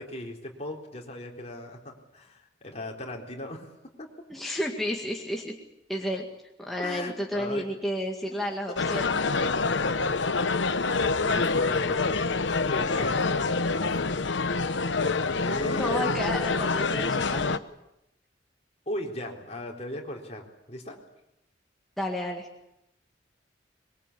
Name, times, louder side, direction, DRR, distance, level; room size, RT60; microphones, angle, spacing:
voice 1, 0.0-3.7 4.0-4.1 6.8-7.7 8.3-8.4 8.7-8.8 9.2-14.3 15.0-16.2 18.9-21.0, left 1 dB, 35° left, 0 dB, 4.1 m, -38 dB
voice 2, 4.3-5.6 5.9-6.3 6.6-9.2 15.7-17.6 22.0-22.5, equal, ahead, -1 dB, 2.0 m, -31 dB
sound 1, 8.8-17.6, left 4 dB, 80° left, 1.0 m, -26 dB
23.5 x 22.5 x 8.5 m, 0.86 s
head